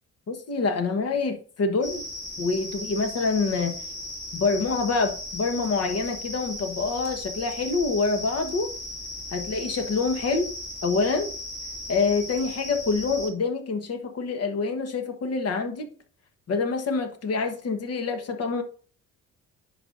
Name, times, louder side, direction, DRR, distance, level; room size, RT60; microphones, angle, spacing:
voice 1, 0.3-2.0 2.4-3.7 4.3-8.7 9.3-10.5 10.8-11.3 11.9-15.9 16.5-18.6, left 4 dB, 55° left, 6 dB, 1.3 m, -26 dB
sound 1, 1.8-13.3, left 1 dB, 40° left, 1.8 m, -37 dB
9.9 x 5.2 x 2.6 m, 0.41 s
cardioid pair, 90°, 30 cm